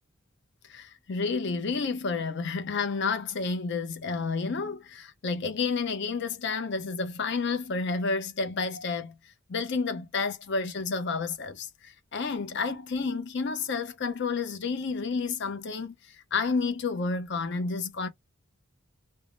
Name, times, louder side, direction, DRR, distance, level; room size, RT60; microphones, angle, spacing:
voice 1, 0.6-9.1 9.5-15.9 16.3-18.1, left 4 dB, 60° left, 0.7 m, -30 dB
3.4 x 2.1 x 2.5 m
head